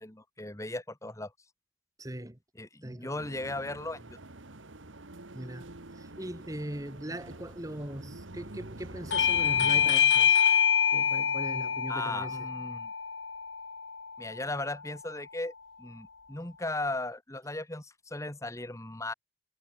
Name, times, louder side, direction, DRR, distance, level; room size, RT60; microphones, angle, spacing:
voice 1, 0.0-1.3 2.6-4.2 11.9-12.9 14.2-19.1, left 2 dB, 15° left, 1.6 m, -37 dB
voice 2, 2.0-2.4 2.8-3.2 5.3-10.4 10.9-12.5, right 1 dB, 15° right, 1.2 m, -40 dB
sound 1, 3.1-10.0, right 2 dB, 80° right, 2.1 m, -46 dB
Bell / Doorbell, 9.1-14.3, left 8 dB, 70° left, 1.6 m, -26 dB
head